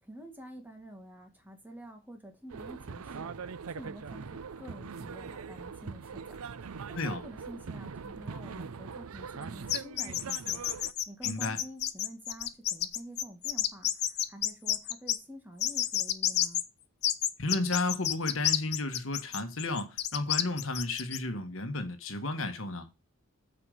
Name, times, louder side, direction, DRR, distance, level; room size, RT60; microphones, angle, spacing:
voice 1, 0.0-10.6 11.1-16.6, right 1 dB, 10° right, 1.9 m, -48 dB
sound 1, 2.5-10.9, right 5 dB, 85° right, 0.6 m, -42 dB
sound 2, 9.7-15.2 15.6-16.6 17.0-21.2, left 12 dB, 50° left, 0.7 m, -30 dB
voice 2, 11.2-11.6 17.4-22.9, left 2 dB, 65° left, 1.5 m, -33 dB
8.4 x 5.3 x 6.6 m
head